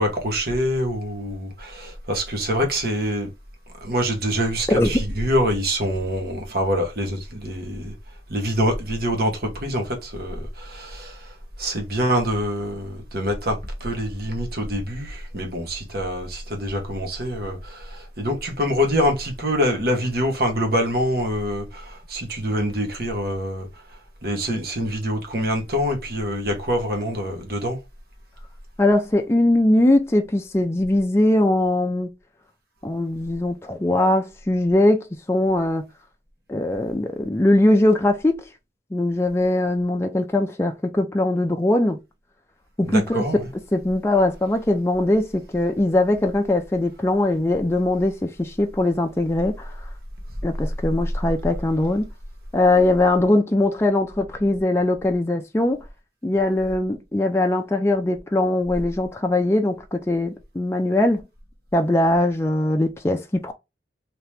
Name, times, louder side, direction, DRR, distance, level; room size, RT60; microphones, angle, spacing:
voice 1, 0.0-3.3 3.8-7.9 8.3-11.2 11.6-23.7 24.2-27.8 42.9-43.4, equal, 55° right, 1.2 m, -25 dB
voice 2, 4.7-5.0 28.8-32.1 32.8-35.8 36.5-38.5 38.9-42.0 42.8-43.2 43.7-49.7 50.4-52.0 52.5-55.8 56.2-61.2 61.7-63.5, left 1 dB, 15° left, 0.4 m, -21 dB
2.9 x 2.9 x 3.2 m
head